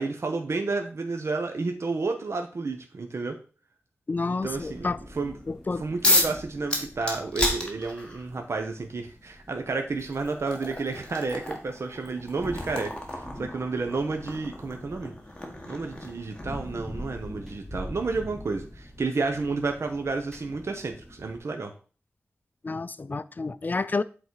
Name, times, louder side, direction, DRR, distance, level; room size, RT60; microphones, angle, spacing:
voice 1, 0.0-3.4 4.4-4.9 5.2-5.3 5.8-15.1 15.7-21.7, right 3 dB, 70° right, 0.9 m, -31 dB
voice 2, 4.1-5.0 5.5-5.9 22.6-24.0, left 3 dB, 40° left, 0.4 m, -29 dB
sound 1, 4.4-21.4, left 1 dB, 5° right, 2.2 m, -44 dB
sound 2, 6.0-6.4 6.7-8.3 9.4-9.5 10.0-16.6, left 1 dB, 20° left, 1.8 m, -30 dB
8.1 x 4.0 x 4.7 m
wide cardioid pair, 100°, 5 cm